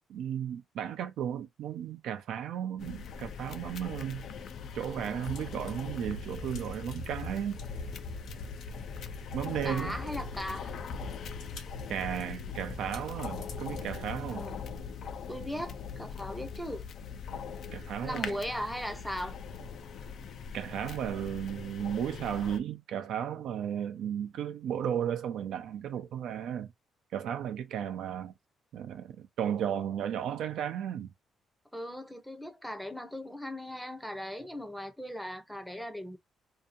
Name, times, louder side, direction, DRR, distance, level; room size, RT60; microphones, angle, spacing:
voice 1, 0.1-4.2 4.7-7.6 9.3-10.0 11.9-14.4 17.7-18.4 20.5-26.7 27.1-28.3 28.7-31.1, right 9 dB, 80° right, 0.4 m, -34 dB
sound 1, 2.8-22.6, left 6 dB, 65° left, 0.4 m, -42 dB
sound 2, 5.2-14.5, left 2 dB, 80° left, 0.9 m, -43 dB
voice 2, 9.6-10.8 14.3-14.6 15.3-16.9 18.0-19.4 31.7-36.2, equal, ahead, 0.6 m, -38 dB
2.7 x 2.3 x 2.5 m
cardioid pair, 90°, 0 cm